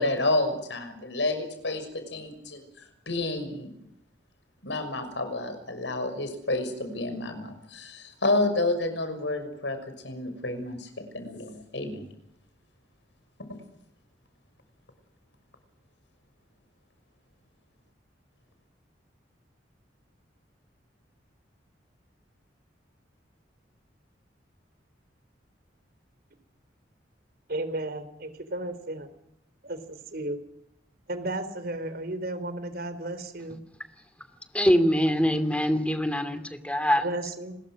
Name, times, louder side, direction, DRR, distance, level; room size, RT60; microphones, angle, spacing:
voice 1, 0.0-2.6 3.1-3.7 4.6-9.8 10.0-12.1, left 2 dB, 80° left, 8 dB, 6.2 m, -29 dB
voice 2, 27.5-29.1 29.6-30.4 31.1-33.6 37.0-37.5, right 1 dB, 55° right, 11 dB, 3.9 m, -34 dB
voice 3, 34.5-37.0, equal, 5° left, 10 dB, 2.6 m, -23 dB
29.5 x 21.5 x 6.4 m, 0.79 s
head